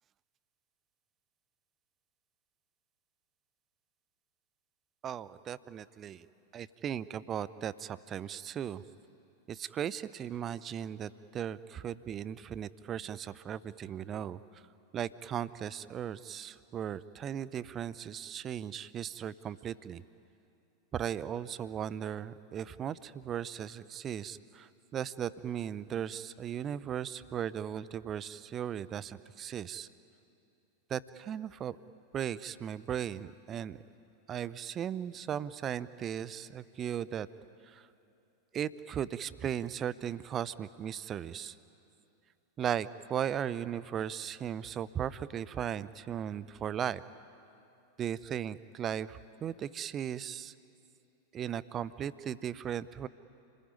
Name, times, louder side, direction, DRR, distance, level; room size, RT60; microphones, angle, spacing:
voice 1, 5.0-6.3 6.5-8.8 9.5-14.4 14.9-20.0 20.9-29.9 30.9-31.8 32.1-33.8 34.3-37.3 37.7-37.8 38.5-41.5 42.6-47.0 48.0-50.5 51.3-53.1, right 9 dB, 25° right, 17 dB, 0.7 m, -37 dB
29.5 x 20.0 x 9.7 m, 2.7 s
figure-of-eight pair, 90°, 0 cm